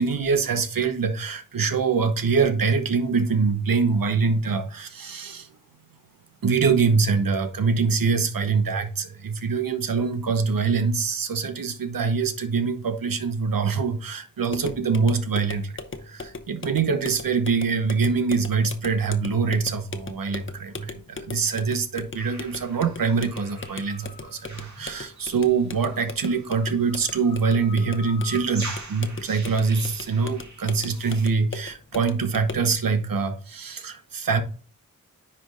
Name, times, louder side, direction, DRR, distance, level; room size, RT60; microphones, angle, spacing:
voice 1, 0.0-5.5 6.4-34.4, right 5 dB, 80° right, 1.0 m, -24 dB
sound 1, 14.5-32.7, left 3 dB, 35° left, 0.9 m, -39 dB
sound 2, 22.2-31.3, right 2 dB, 55° right, 1.8 m, -43 dB
9.9 x 3.4 x 3.9 m
cardioid pair, 50°, 34 cm